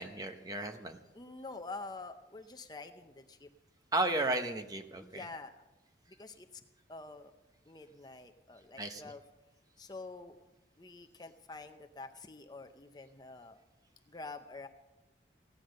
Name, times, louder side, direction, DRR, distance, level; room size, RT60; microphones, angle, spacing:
voice 1, 0.0-1.0 3.9-5.2 8.8-9.0, right 2 dB, 20° right, 6 dB, 0.8 m, -34 dB
voice 2, 1.1-3.5 5.0-5.6 6.1-6.6 6.9-7.3 7.7-9.2 9.8-10.4 10.8-13.6 14.1-14.7, left 3 dB, 20° left, 7 dB, 0.6 m, -47 dB
16.0 x 9.9 x 6.4 m, 1.0 s
head